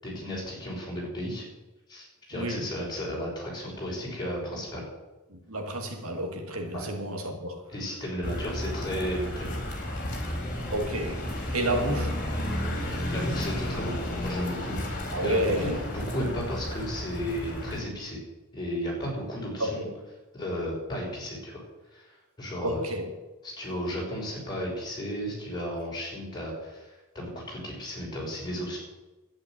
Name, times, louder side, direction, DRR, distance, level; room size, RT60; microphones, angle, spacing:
voice 1, 0.0-1.4 1.9-4.8 6.7-6.9 7.7-9.6 12.7-18.2 18.5-19.8 20.3-21.6 21.9-22.1 22.4-22.8 23.4-26.9 27.1-28.8, equal, 20° left, -4 dB, 6.1 m, -34 dB
voice 2, 2.3-2.7 5.3-7.7 10.7-11.2 11.5-12.2 15.1-15.8 19.6-19.9 22.6-23.1, right 1 dB, 70° right, 4 dB, 2.2 m, -30 dB
sound 1, 8.2-17.8, left 1 dB, 35° left, 4.1 m, -33 dB
11.5 x 10.0 x 9.1 m, 1.1 s
head